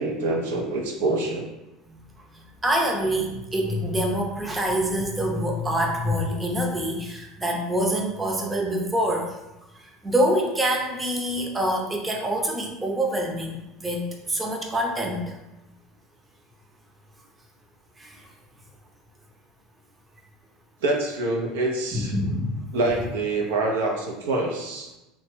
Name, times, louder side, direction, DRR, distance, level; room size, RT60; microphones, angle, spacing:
voice 1, 0.0-1.4 20.8-22.2 22.7-25.0, right 2 dB, 80° right, 1 dB, 0.5 m, -26 dB
voice 2, 2.6-9.3 10.0-15.3 18.0-18.2 21.9-22.7, equal, 15° right, 1 dB, 0.6 m, -26 dB
2.9 x 2.1 x 3.1 m, 0.97 s
hypercardioid pair, 85°, 0 cm